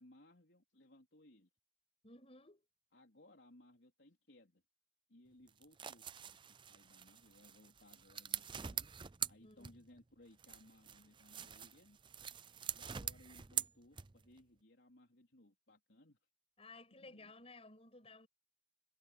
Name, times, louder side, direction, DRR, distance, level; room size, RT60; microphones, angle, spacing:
voice 1, 0.0-1.5 2.9-4.6 5.1-8.9 9.3-12.0 12.7-16.2 16.9-17.3, left 1 dB, 80° left, 3.8 m, -64 dB
voice 2, 2.0-2.6 9.4-9.7 16.6-18.3, left 2 dB, 35° left, 6.6 m, -57 dB
sound 1, 5.5-10.0 10.4-14.4, right 9 dB, 25° right, 0.5 m, -45 dB
head